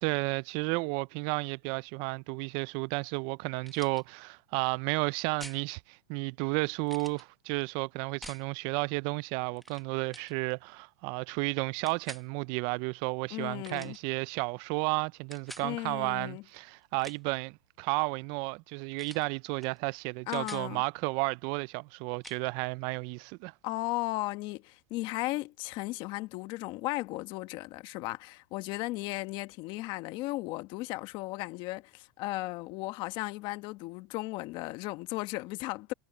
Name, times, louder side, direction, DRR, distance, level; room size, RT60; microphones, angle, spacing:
voice 1, 0.0-23.5, right 27 dB, 45° right, 0.4 m, -32 dB
sound 1, 3.6-4.0 5.4-5.6 6.9-7.2 8.2-8.5 9.6-9.8 10.1-10.3 11.9-12.3 13.6-14.0 15.3-15.7 16.8-17.4 19.0-19.3 19.6-19.8 20.1-20.7 22.2-22.4, equal, ahead, 1.2 m, -47 dB
voice 2, 13.3-14.0 15.6-16.4 20.3-20.8 23.6-35.9, left 20 dB, 45° left, 1.2 m, -36 dB
supercardioid pair, 135°, 11 cm